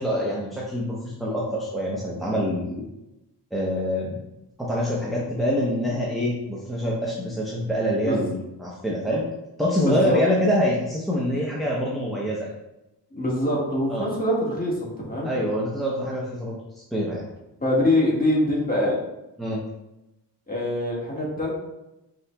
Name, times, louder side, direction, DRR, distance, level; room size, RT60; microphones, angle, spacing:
voice 1, 0.0-2.8 3.5-4.2 4.6-9.2 9.6-12.5 13.9-14.1 15.2-17.2 19.4-19.6, equal, ahead, -5 dB, 0.7 m, -25 dB
voice 2, 9.8-10.2 13.1-15.3 17.6-19.0 20.5-21.5, left 1 dB, 20° left, -5 dB, 1.6 m, -24 dB
5.8 x 3.9 x 2.3 m, 0.93 s
wide cardioid pair, 100°, 42 cm